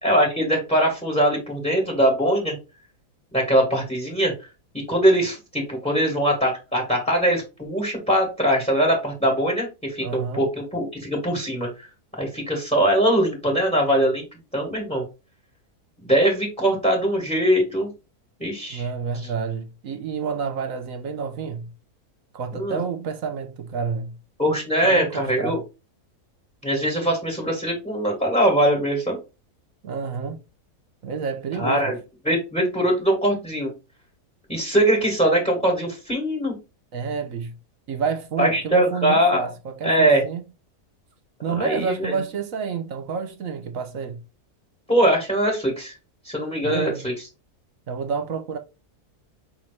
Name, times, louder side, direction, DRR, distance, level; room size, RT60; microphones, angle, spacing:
voice 1, 0.0-2.5 3.3-4.3 4.9-11.9 12.2-14.2 14.5-15.0 16.0-17.9 18.4-18.9 22.5-22.8 24.4-25.6 26.6-29.2 31.6-31.9 32.2-33.7 34.5-36.5 38.4-39.5 39.8-40.2 41.5-42.1 44.9-45.9 46.2-47.1, right 1 dB, 5° left, 1.4 m, -21 dB
voice 2, 10.0-10.4 18.7-21.7 22.3-24.1 24.8-25.6 29.8-30.4 31.0-32.0 36.9-37.5 37.9-40.4 41.4-44.2 46.6-47.1 47.9-48.6, right 5 dB, 60° right, 1.2 m, -29 dB
5.7 x 2.9 x 3.2 m
omnidirectional pair, 1.7 m